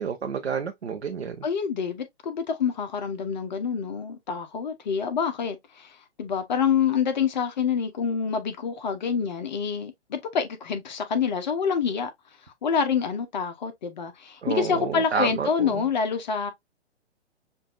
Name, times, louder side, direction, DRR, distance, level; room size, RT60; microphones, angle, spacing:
voice 1, 0.0-1.5 14.4-15.9, right 6 dB, 70° right, 0.8 m, -29 dB
voice 2, 1.4-12.1 12.6-16.5, left 6 dB, 40° left, 0.8 m, -27 dB
6.5 x 2.6 x 2.4 m
figure-of-eight pair, 125°, 34 cm